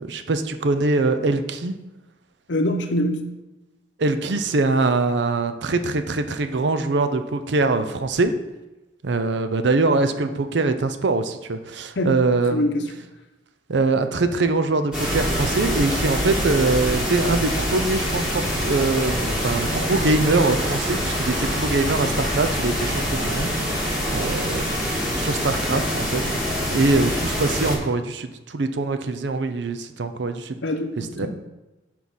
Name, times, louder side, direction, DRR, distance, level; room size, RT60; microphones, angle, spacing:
voice 1, 0.0-1.7 4.0-8.3 9.0-12.7 13.7-23.8 24.1-24.9 25.2-26.2 26.7-30.6 31.0-31.3, right 3 dB, 70° right, 9 dB, 0.5 m, -23 dB
voice 2, 2.5-3.3 12.0-12.2 12.5-12.9 30.6-31.3, left 1 dB, 75° left, 6 dB, 0.8 m, -24 dB
sound 1, 14.9-27.7, equal, 5° right, 1.9 m, -25 dB
6.3 x 4.5 x 5.4 m, 1.0 s
head